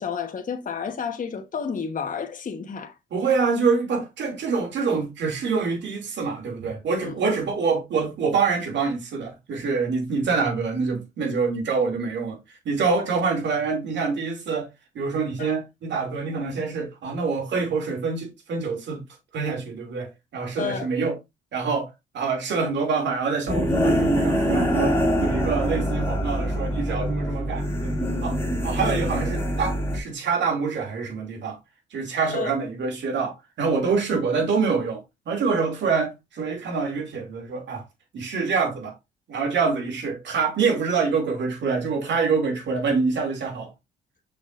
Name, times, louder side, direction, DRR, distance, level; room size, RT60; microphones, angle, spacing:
voice 1, 0.0-2.9 7.0-7.1 15.4-15.5 20.6-20.9 32.2-32.5, left 6 dB, 40° left, 1.2 m, -31 dB
voice 2, 3.1-14.7 14.9-19.0 19.3-21.1 21.5-31.6 31.9-37.8 38.1-39.0 39.3-43.7, right 5 dB, 65° right, 2.6 m, -26 dB
sound 1, 23.5-30.0, equal, 10° left, 2.4 m, -24 dB
6.3 x 5.9 x 2.5 m
cardioid pair, 90°, 20 cm